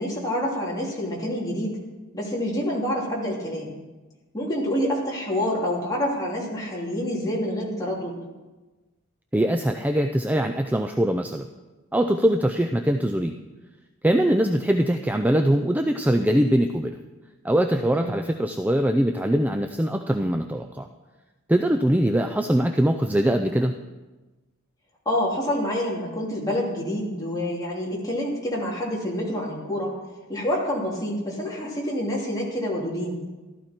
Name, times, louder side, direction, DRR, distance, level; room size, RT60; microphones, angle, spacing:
voice 1, 0.0-1.8 2.1-3.7 4.3-8.2 17.9-18.3 25.0-30.0 30.3-33.2, equal, 15° left, -4 dB, 3.0 m, -27 dB
voice 2, 9.3-11.5 11.9-13.4 14.0-17.0 17.4-20.9 21.5-23.8, right 1 dB, 10° right, 5 dB, 0.4 m, -22 dB
14.5 x 12.5 x 4.5 m, 1.2 s
head